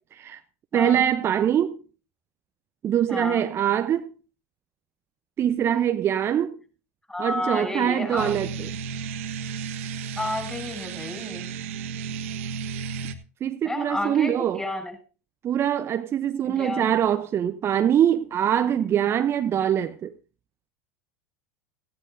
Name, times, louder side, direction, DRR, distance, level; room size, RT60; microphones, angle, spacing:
voice 1, 0.7-1.8 2.8-4.1 5.4-6.6 7.2-8.7 13.4-14.6 15.4-20.1, right 10 dB, 35° right, 0.7 m, -23 dB
voice 2, 3.1-3.5 7.1-8.3 10.2-11.5 13.6-14.3 14.6-14.9 16.4-16.9, left 2 dB, 10° left, 6.7 m, -31 dB
sound 1, 8.2-13.1, right 6 dB, 80° right, 1.2 m, -33 dB
17.0 x 15.0 x 2.7 m
hypercardioid pair, 90°, 7 cm